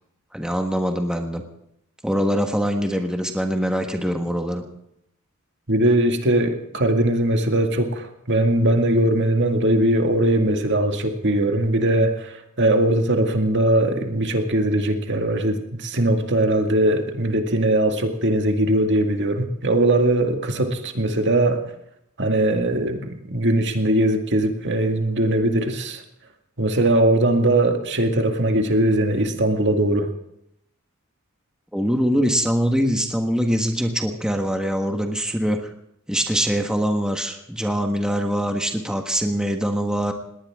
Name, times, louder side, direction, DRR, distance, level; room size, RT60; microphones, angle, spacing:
voice 1, 0.3-1.4 2.0-4.6 31.7-35.7 36.1-40.1, equal, 5° right, 4 dB, 1.4 m, -23 dB
voice 2, 5.7-21.6 22.2-26.0 26.6-30.1, right 1 dB, 55° right, 5 dB, 2.1 m, -20 dB
20.0 x 18.5 x 3.7 m, 0.76 s
head